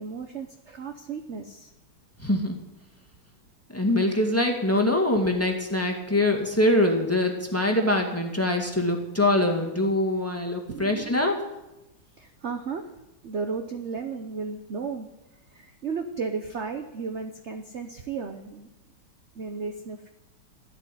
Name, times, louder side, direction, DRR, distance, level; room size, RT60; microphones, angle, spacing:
voice 1, 0.0-1.7 10.7-11.3 12.2-12.9 13.2-15.1 15.5-18.7 19.3-20.1, right 5 dB, 55° right, 6 dB, 0.8 m, -34 dB
voice 2, 2.2-2.6 3.7-11.4, left 1 dB, 5° left, 2 dB, 1.7 m, -24 dB
13.0 x 8.3 x 10.0 m, 0.96 s
omnidirectional pair, 2.4 m